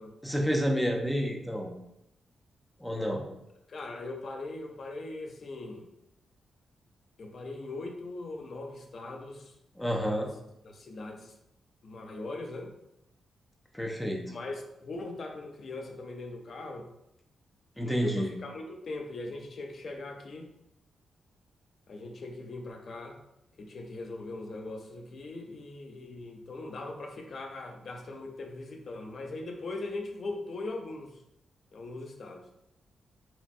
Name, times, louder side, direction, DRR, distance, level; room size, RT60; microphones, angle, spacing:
voice 1, 0.2-1.7 2.8-3.2 9.8-10.3 13.7-14.2 17.8-18.3, equal, 5° left, 1 dB, 0.5 m, -29 dB
voice 2, 3.7-5.9 7.2-9.5 9.9-10.3 10.6-11.3 11.8-12.7 14.3-16.9 17.8-20.5 21.9-23.2 23.6-31.2 31.7-32.5, left 2 dB, 50° left, 3 dB, 0.6 m, -40 dB
5.7 x 2.1 x 2.6 m, 0.83 s
wide cardioid pair, 145°, 0 cm